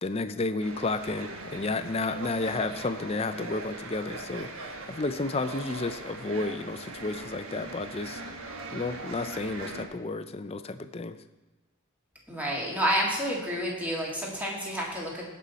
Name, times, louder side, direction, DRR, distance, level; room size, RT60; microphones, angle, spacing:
voice 1, 0.0-8.2 8.7-11.2, left 3 dB, 30° left, 11 dB, 0.4 m, -32 dB
sound 1, 0.6-9.9, right 2 dB, 80° right, 1.2 m, -40 dB
voice 2, 12.3-15.2, equal, 10° right, -3 dB, 2.0 m, -29 dB
16.5 x 5.5 x 4.1 m, 1.2 s
head